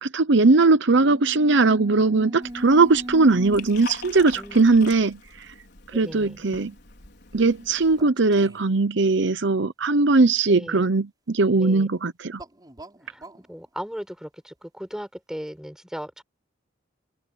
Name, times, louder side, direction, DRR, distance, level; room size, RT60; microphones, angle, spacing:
voice 1, 0.0-5.2 5.9-6.7 7.3-12.4, right 3 dB, 70° right, 0.9 m, -19 dB
sound 1, 1.0-5.0 5.9-6.0 8.0-8.8 12.3-13.5, right 1 dB, 20° right, 5.4 m, -39 dB
Liquid, 2.4-8.0, left 5 dB, 60° left, 5.0 m, -44 dB
voice 2, 4.3-4.9 5.9-6.4 10.5-10.8 11.6-11.9 13.0-16.2, equal, 5° right, 6.9 m, -37 dB
head